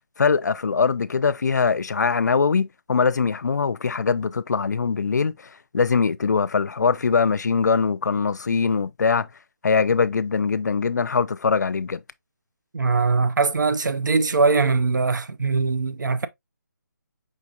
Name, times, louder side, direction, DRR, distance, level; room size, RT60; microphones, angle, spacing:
voice 1, 0.2-5.3 5.7-9.3 9.6-12.0, left 5 dB, 60° left, 0.4 m, -22 dB
voice 2, 12.7-16.3, right 4 dB, 70° right, 0.6 m, -21 dB
5.1 x 4.1 x 2.2 m
hypercardioid pair, 175°, 11 cm